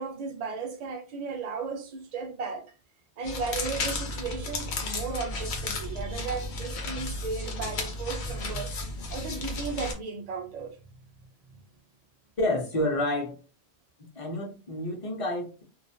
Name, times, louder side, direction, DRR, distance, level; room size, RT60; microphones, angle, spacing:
voice 1, 0.0-2.7 3.2-8.7 9.1-10.8, right 4 dB, 55° right, 0.4 m, -35 dB
sound 1, 3.2-9.9, left 2 dB, 85° left, 0.9 m, -33 dB
voice 2, 12.4-13.4 14.1-15.6, left 1 dB, 40° left, 0.6 m, -29 dB
2.3 x 2.1 x 2.5 m
omnidirectional pair, 1.1 m